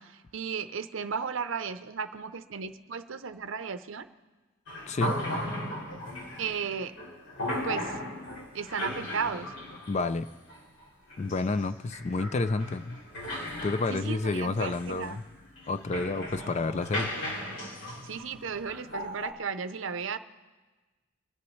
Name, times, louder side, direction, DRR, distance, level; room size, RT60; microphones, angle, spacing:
voice 1, 0.0-4.1 6.4-6.9 7.6-8.0 8.5-9.5 13.9-15.2 18.0-20.2, right 6 dB, 65° right, 11 dB, 0.6 m, -35 dB
sound 1, 4.7-19.3, equal, 60° left, 2.4 m, -37 dB
voice 2, 4.9-5.2 9.9-10.3 11.2-13.0 13.6-15.2 15.7-17.4, left 3 dB, 30° left, 12 dB, 0.4 m, -30 dB
24.0 x 11.5 x 3.2 m, 1.3 s
head